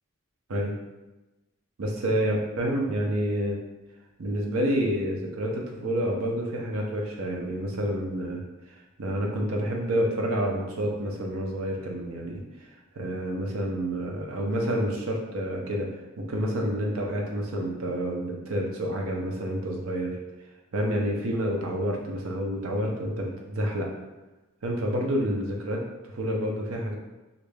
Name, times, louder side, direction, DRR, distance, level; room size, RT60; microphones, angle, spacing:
voice 1, 1.8-3.6 4.2-8.4 8.7-12.7 12.9-15.9 16.2-20.2 20.7-23.9 24.6-27.0, equal, 90° right, 0 dB, 0.6 m, -28 dB
2.5 x 2.2 x 3.2 m, 1.1 s
head